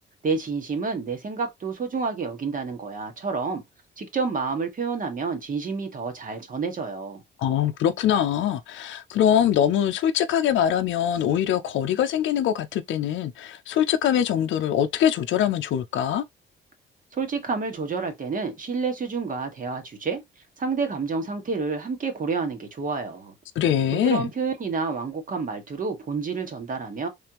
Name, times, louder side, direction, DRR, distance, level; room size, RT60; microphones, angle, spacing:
voice 1, 0.2-3.6 4.0-7.2 17.1-20.2 20.6-23.3 23.9-27.1, right 4 dB, 40° right, 1.5 m, -29 dB
voice 2, 7.4-16.2 23.6-24.3, left 10 dB, 75° left, 0.5 m, -23 dB
3.4 x 3.3 x 2.9 m
cardioid pair, 90°, 20 cm